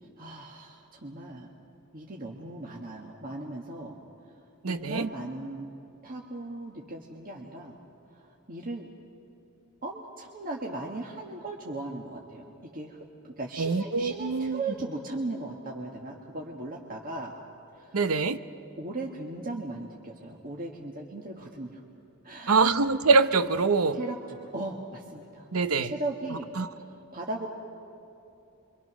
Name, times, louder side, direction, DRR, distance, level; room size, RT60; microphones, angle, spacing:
voice 1, 0.2-1.5 1.9-4.0 4.6-5.7 6.0-7.7 8.1-8.9 9.8-13.0 13.2-17.3 17.7-18.0 18.8-21.8 22.2-22.7 23.9-25.5 25.8-27.5, right 2 dB, 40° right, -1 dB, 1.6 m, -37 dB
voice 2, 4.6-5.1 13.6-14.6 17.9-18.4 22.5-24.0 25.5-25.9 26.6-26.7, right 4 dB, 85° right, 12 dB, 0.8 m, -24 dB
29.0 x 24.0 x 6.2 m, 2.9 s
head